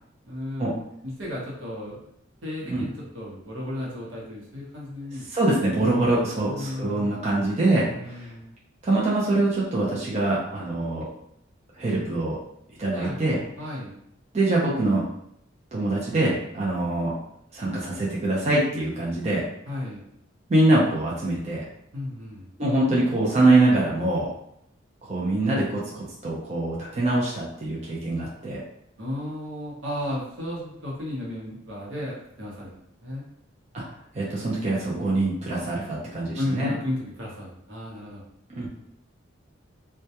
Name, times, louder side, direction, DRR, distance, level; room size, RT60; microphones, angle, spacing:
voice 1, 0.3-0.7 1.0-2.0 2.4-6.0 6.5-7.1 7.9-8.5 12.9-13.2 13.6-14.0 19.7-20.0 21.9-22.5 29.0-33.2 35.5-35.6 36.4-38.2, left 1 dB, 80° right, -5 dB, 0.9 m, -34 dB
voice 2, 5.3-8.3 8.8-11.0 11.8-12.4 12.8-13.4 14.3-15.0 15.7-17.1 17.5-19.4 20.5-21.6 22.6-24.3 25.1-28.6 33.7-33.8 34.1-36.7 38.5-38.7, right 2 dB, 35° right, -5 dB, 0.4 m, -24 dB
2.2 x 2.2 x 2.8 m, 0.74 s
head